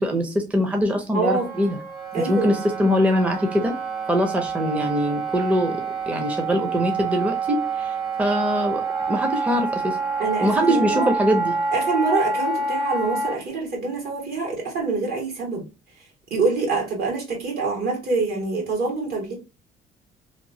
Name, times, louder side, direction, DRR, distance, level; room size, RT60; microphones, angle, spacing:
voice 1, 0.0-1.8 2.1-3.8 4.1-10.0 10.4-11.5, equal, 10° right, 0.5 m, -23 dB
voice 2, 1.1-1.5 2.1-2.5 10.2-11.1 11.7-15.6 16.3-19.3, right 3 dB, 65° right, 1.7 m, -25 dB
Wind instrument woodwind instrument, 1.3-13.4, right 4 dB, 25° right, 0.9 m, -27 dB
2.9 x 2.4 x 2.6 m
cardioid pair, 110°, 17 cm